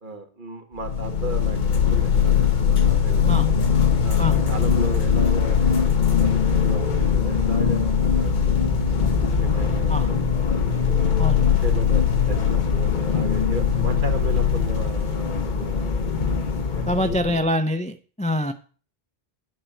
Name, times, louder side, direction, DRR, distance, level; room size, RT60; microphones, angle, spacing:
voice 1, 0.0-1.6 1.9-3.4 4.0-8.8 9.4-10.2 10.7-10.9 11.4-17.4, right 2 dB, 55° right, 4 dB, 1.6 m, -36 dB
sound 1, 0.8-17.4, left 7 dB, 50° left, 1.1 m, -21 dB
voice 2, 16.9-18.5, left 1 dB, 10° left, 8 dB, 0.4 m, -25 dB
9.5 x 4.4 x 7.7 m, 0.40 s
omnidirectional pair, 1.0 m